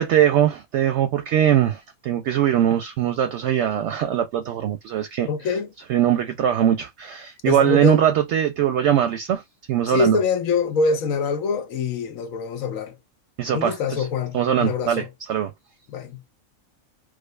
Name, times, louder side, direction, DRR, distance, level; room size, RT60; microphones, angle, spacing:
voice 1, 0.0-5.3 5.9-9.4 9.7-10.2 13.4-13.7 14.3-15.0 15.3-15.5, right 10 dB, 65° right, 0.8 m, -21 dB
voice 2, 5.3-5.7 7.4-8.0 9.9-13.0 13.5-15.1 15.9-16.2, left 4 dB, 80° left, 1.1 m, -24 dB
4.9 x 2.2 x 2.2 m
omnidirectional pair, 1.4 m